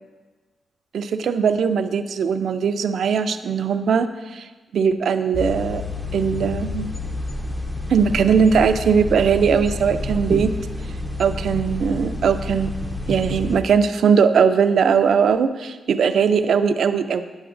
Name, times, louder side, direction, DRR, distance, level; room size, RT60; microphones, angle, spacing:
voice 1, 0.9-4.5 4.7-5.8 6.1-6.9 7.9-10.6 11.2-12.7 13.1-17.2, right 6 dB, 75° right, 9 dB, 0.4 m, -19 dB
sound 1, 5.3-13.6, left 2 dB, 5° left, 0.6 m, -29 dB
9.6 x 8.0 x 2.5 m, 1.3 s
cardioid pair, 85°, 0 cm